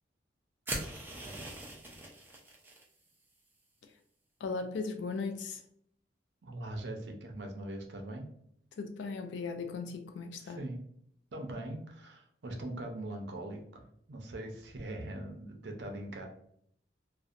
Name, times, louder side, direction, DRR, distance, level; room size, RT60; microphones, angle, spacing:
sound 1, 0.6-2.8, right 2 dB, 10° right, 0.3 m, -41 dB
voice 1, 4.4-5.6 8.8-10.6, left 4 dB, 70° left, 5 dB, 0.3 m, -37 dB
voice 2, 6.4-8.3 10.4-10.8 11.3-16.3, right 1 dB, 70° right, 3 dB, 0.5 m, -41 dB
2.6 x 2.1 x 2.4 m, 0.68 s
head